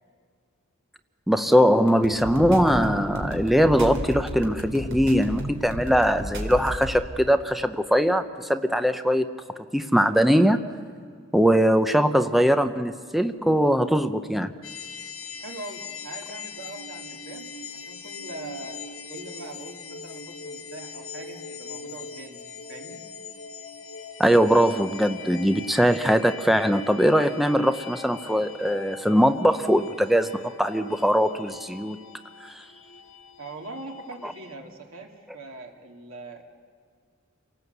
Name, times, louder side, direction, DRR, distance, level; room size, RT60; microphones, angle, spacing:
voice 1, 1.3-9.4 9.7-10.6 11.3-14.5 24.2-32.0 32.4-32.6 34.2-34.3, equal, ahead, 8 dB, 0.7 m, -21 dB
sound 1, 1.9-7.0, equal, 65° right, 3.6 m, -33 dB
sound 2, 14.6-34.5, left 5 dB, 80° left, 1.9 m, -41 dB
voice 2, 15.4-18.8 19.1-22.4 22.7-23.1 33.4-36.4, right 2 dB, 85° right, 2 dB, 2.7 m, -41 dB
29.0 x 18.5 x 8.1 m, 2.1 s
head